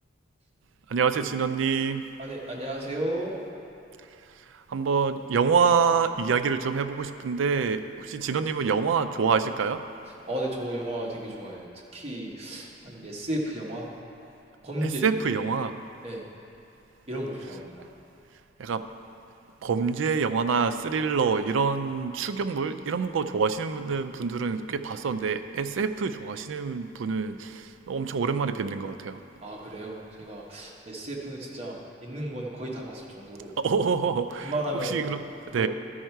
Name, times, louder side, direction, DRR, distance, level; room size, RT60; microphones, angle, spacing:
voice 1, 0.9-2.0 4.7-9.8 14.8-15.7 18.6-18.8 19.6-29.2 33.6-35.7, right 5 dB, 80° right, 10 dB, 0.4 m, -26 dB
voice 2, 2.2-3.3 10.3-11.7 11.9-13.9 14.6-15.0 16.0-16.3 17.1-17.9 29.4-33.5 34.4-35.0 35.6-35.7, right 1 dB, 30° right, -3 dB, 1.2 m, -33 dB
12.0 x 5.5 x 4.5 m, 2.7 s
head